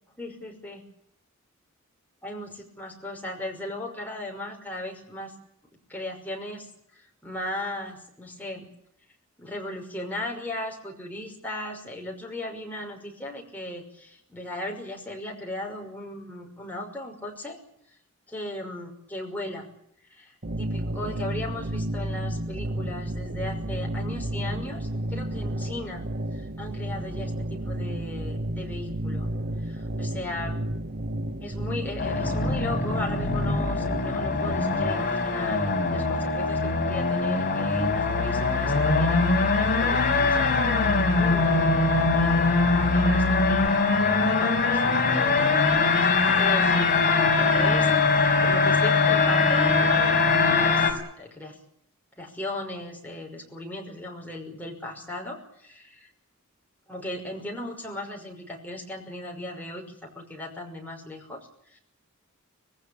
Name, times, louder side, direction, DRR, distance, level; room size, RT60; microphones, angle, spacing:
voice 1, 0.2-0.8 2.2-5.3 5.9-6.7 6.9-8.7 9.4-17.6 18.3-19.7 20.1-26.1 26.3-29.3 29.6-30.6 31.4-35.6 35.9-42.5 42.9-47.1 47.4-47.9 48.2-51.6 52.2-56.1 56.9-59.9 60.1-61.4 61.7-61.8, left 1 dB, 10° left, 0 dB, 5.8 m, -37 dB
sound 1, 20.4-34.0, right 1 dB, 45° right, 1.3 m, -32 dB
sound 2, 32.0-50.9, left 3 dB, 40° left, 4.6 m, -22 dB
sound 3, 37.7-43.7, left 5 dB, 70° left, 0.9 m, -31 dB
26.0 x 18.0 x 8.7 m, 0.73 s
head